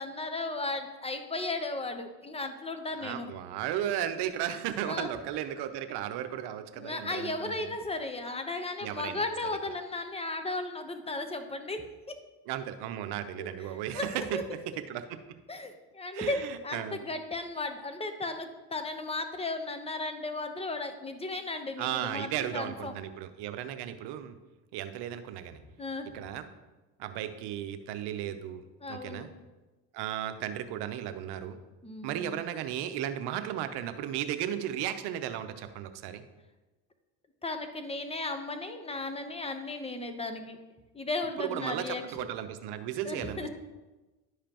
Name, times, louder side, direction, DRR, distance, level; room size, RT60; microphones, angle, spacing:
voice 1, 0.0-3.3 4.9-5.1 6.8-12.2 13.4-14.4 15.5-22.9 25.8-26.2 28.8-29.3 31.8-32.4 37.4-40.6 40.9-42.3 43.0-43.5, left 2 dB, 15° left, 7 dB, 0.9 m, -35 dB
voice 2, 3.0-7.7 8.8-9.2 12.5-14.6 14.9-15.2 16.1-17.0 21.8-24.4 24.7-25.6 26.1-26.5 27.0-29.3 29.9-31.6 32.0-36.2 41.4-43.5, right 11 dB, 70° right, 9 dB, 0.8 m, -35 dB
11.0 x 5.0 x 3.0 m, 1.1 s
supercardioid pair, 90°, 41 cm